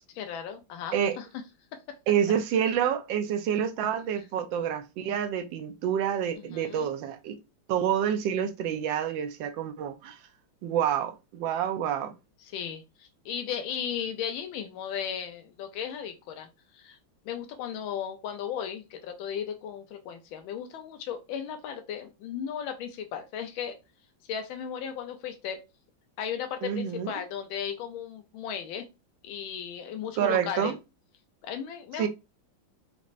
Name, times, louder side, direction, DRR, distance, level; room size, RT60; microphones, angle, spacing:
voice 1, 0.1-1.2 6.4-6.9 12.4-16.5 16.7-17.0 17.2-23.7 24.3-25.6 26.2-28.9 29.2-30.7 31.4-32.1, left 8 dB, 90° left, 1.4 m, -36 dB
voice 2, 2.1-7.4 7.7-10.2 10.6-12.1 26.6-27.1 30.2-30.8 32.0-32.1, right 9 dB, 75° right, 1.4 m, -28 dB
5.2 x 3.1 x 2.5 m
omnidirectional pair, 2.2 m